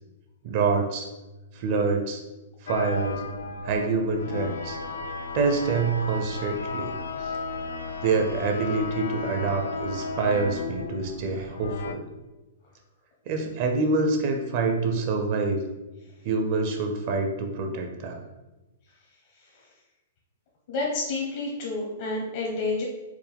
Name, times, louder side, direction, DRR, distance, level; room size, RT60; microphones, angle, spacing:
voice 1, 0.4-1.1 1.5-2.2 2.6-3.2 3.6-4.8 5.3-7.3 8.0-12.1 13.3-15.7 16.2-18.2, right 4 dB, 45° right, 4 dB, 0.5 m, -26 dB
sound 1, 2.7-11.9, left 4 dB, 90° left, 0.3 m, -34 dB
voice 2, 20.7-22.8, left 3 dB, 55° left, -3 dB, 0.8 m, -29 dB
4.5 x 2.1 x 3.5 m, 1.1 s
hypercardioid pair, 160°, 0 cm